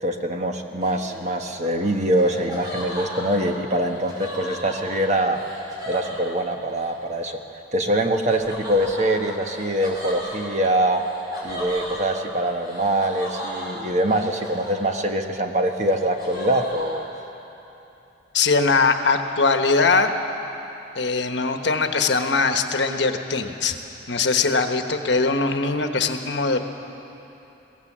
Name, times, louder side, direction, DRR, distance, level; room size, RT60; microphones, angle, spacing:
voice 1, 0.0-5.4 5.9-7.4 7.7-11.0 11.4-17.0, right 1 dB, 40° right, 4 dB, 1.3 m, -23 dB
Laughter, 0.8-6.9 8.3-15.3 15.6-17.0, equal, 20° right, 5.8 m, -36 dB
voice 2, 18.3-20.1 20.9-23.8 24.1-26.6, left 4 dB, 75° left, 6 dB, 1.2 m, -21 dB
22.5 x 17.0 x 7.4 m, 3.0 s
head